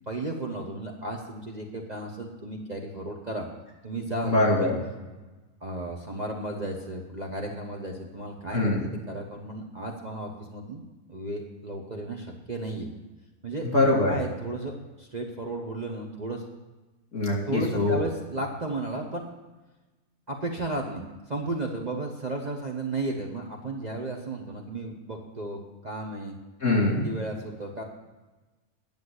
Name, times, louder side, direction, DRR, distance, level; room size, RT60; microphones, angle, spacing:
voice 1, 0.1-3.5 3.8-4.7 5.6-12.9 13.4-13.7 14.1-16.4 17.5-19.3 20.3-21.0 21.3-26.3 27.0-27.8, right 2 dB, 30° right, -1 dB, 1.1 m, -34 dB
voice 2, 4.2-4.8 8.5-8.8 13.7-14.1 17.1-18.0 26.6-27.0, left 2 dB, 55° left, -2 dB, 3.3 m, -23 dB
10.5 x 7.1 x 7.9 m, 1.2 s
omnidirectional pair, 1.6 m